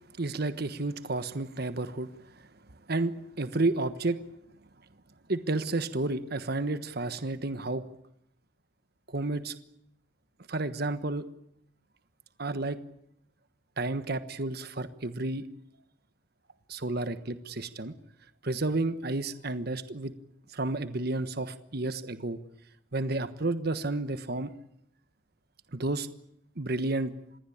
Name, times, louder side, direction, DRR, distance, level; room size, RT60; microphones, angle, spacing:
voice 1, 0.2-2.1 2.9-4.2 5.3-7.8 9.1-9.5 10.5-11.2 12.4-12.8 13.8-15.4 16.7-17.9 18.4-20.1 20.5-22.4 22.9-24.5 25.7-26.1 26.6-27.1, right 2 dB, 55° right, 11 dB, 1.3 m, -31 dB
27.0 x 20.5 x 8.7 m, 0.74 s
head